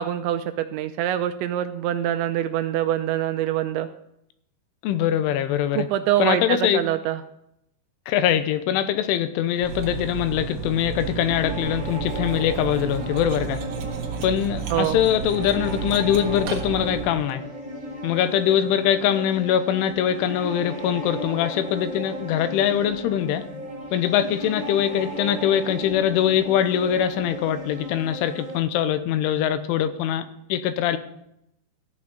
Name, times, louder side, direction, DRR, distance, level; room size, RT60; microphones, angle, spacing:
voice 1, 0.0-3.9 5.7-7.2 14.7-15.0, right 11 dB, 80° right, 9 dB, 2.7 m, -24 dB
voice 2, 4.8-5.9 6.2-6.8 8.1-13.6 14.2-17.4 18.0-23.4 23.9-31.0, left 10 dB, 80° left, 11 dB, 3.2 m, -23 dB
Cutlery silverware, 9.6-17.3, right 7 dB, 65° right, 2.5 m, -32 dB
sound 1, 10.9-28.6, equal, 15° right, 1.3 m, -35 dB
14.5 x 6.1 x 8.7 m, 0.78 s
omnidirectional pair, 5.6 m